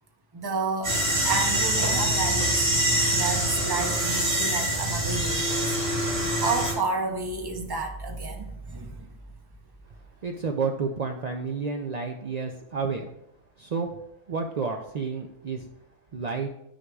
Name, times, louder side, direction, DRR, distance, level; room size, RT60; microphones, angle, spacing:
voice 1, 0.3-1.0 1.2-5.8 6.4-9.1, right 4 dB, 25° right, 2 dB, 0.7 m, -31 dB
sound 1, 0.8-6.7, right 1 dB, 50° right, 2.8 m, -25 dB
voice 2, 10.2-13.0 13.6-14.0 14.3-15.7 16.1-16.5, right 4 dB, 85° right, 3 dB, 0.3 m, -30 dB
9.3 x 6.3 x 2.3 m, 0.83 s
omnidirectional pair, 1.3 m